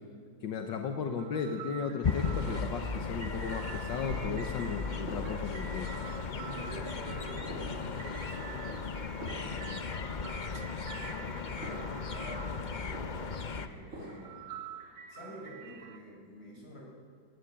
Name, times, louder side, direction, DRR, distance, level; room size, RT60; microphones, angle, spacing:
voice 1, 0.4-5.9, left 5 dB, 80° left, 4 dB, 1.8 m, -35 dB
creepy swedmusic, 1.1-16.0, right 8 dB, 75° right, 2.1 m, -48 dB
sound 1, 2.0-13.7, left 5 dB, 65° left, 0.4 m, -36 dB
sound 2, 5.1-5.7 6.3-6.5 7.4-8.0 8.4-8.6 9.2-9.7 10.3-10.4 11.6-12.1 12.4-13.1 13.9-14.4, right 1 dB, 40° right, 3.5 m, -45 dB
voice 2, 6.3-10.2 10.9-14.4 15.1-16.8, equal, 30° left, -3 dB, 6.4 m, -48 dB
18.5 x 16.5 x 9.0 m, 2.1 s
omnidirectional pair, 2.0 m